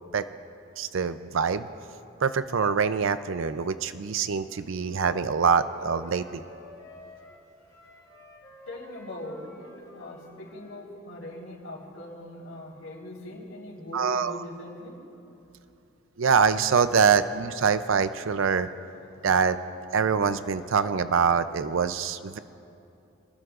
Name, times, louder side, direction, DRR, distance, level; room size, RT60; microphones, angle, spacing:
voice 1, 0.8-1.7 2.2-6.4 13.9-14.4 16.2-18.7 19.2-19.6 19.9-22.4, right 6 dB, 70° right, 12 dB, 0.5 m, -24 dB
Wind instrument woodwind instrument, 4.5-10.8, left 1 dB, 20° left, 3.5 m, -49 dB
voice 2, 7.6-8.0 8.7-15.0, left 1 dB, 85° left, -2 dB, 3.8 m, -41 dB
26.5 x 20.5 x 2.5 m, 2.8 s
head